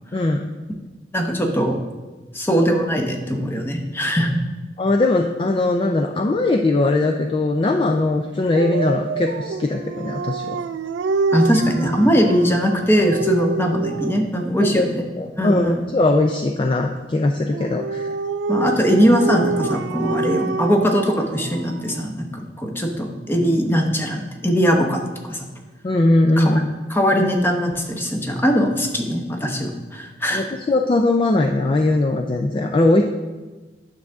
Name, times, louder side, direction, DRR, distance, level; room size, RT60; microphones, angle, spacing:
voice 1, 0.1-0.5 4.8-10.6 14.6-14.9 15.2-18.1 25.8-26.7 30.3-33.0, left 2 dB, 30° left, 4 dB, 0.4 m, -20 dB
voice 2, 1.1-1.8 2.3-4.4 11.3-15.1 15.4-15.8 18.5-25.0 25.3-25.5 26.4-26.6 26.9-30.5, equal, 15° left, 3 dB, 0.8 m, -20 dB
Dog, 8.5-14.3 17.5-22.1, right 4 dB, 85° right, 0.3 m, -27 dB
9.3 x 6.2 x 3.5 m, 1.2 s
head